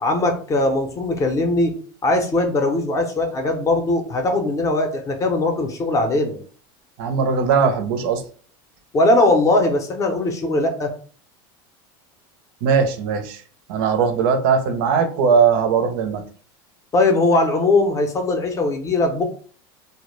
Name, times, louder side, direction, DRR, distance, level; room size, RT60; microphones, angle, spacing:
voice 1, 0.0-1.7 2.0-6.4 8.9-10.9 16.9-19.2, left 2 dB, 25° left, 4 dB, 0.5 m, -20 dB
voice 2, 7.0-8.2 12.6-13.4 13.7-16.2, right 6 dB, 70° right, 7 dB, 0.5 m, -19 dB
2.2 x 2.0 x 3.1 m, 0.43 s
supercardioid pair, 125°, 12 cm